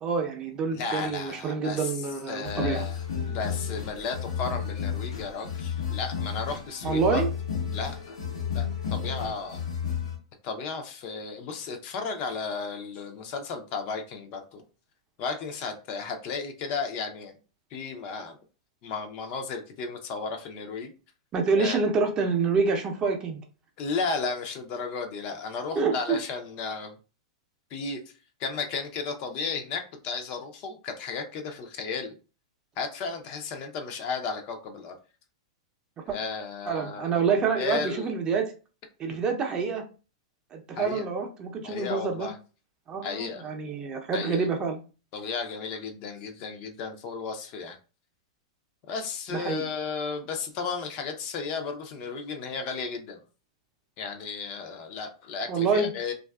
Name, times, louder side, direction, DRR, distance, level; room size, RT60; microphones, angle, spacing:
voice 1, 0.0-2.8 6.8-7.3 21.3-23.4 25.8-26.2 36.1-36.2 36.7-38.5 39.0-39.8 40.5-42.3 42.9-44.8 49.3-49.6 55.5-55.9, right 5 dB, 30° right, 3 dB, 0.5 m, -27 dB
voice 2, 0.7-1.9 2.3-7.2 7.7-8.2 8.5-9.6 10.4-14.6 15.2-17.3 17.7-18.4 18.8-20.9 21.6-21.8 23.8-27.0 27.7-28.0 28.4-32.1 32.8-34.9 36.1-37.2 37.6-38.1 40.8-41.0 41.6-42.4 43.0-43.5 44.1-44.5 45.1-47.8 48.9-53.2 54.0-56.1, left 4 dB, 45° left, 5 dB, 0.5 m, -34 dB
sound 1, 2.4-10.2, left 7 dB, 90° left, 0.9 m, -32 dB
2.5 x 2.3 x 2.3 m, 0.34 s
hypercardioid pair, 125°, 3 cm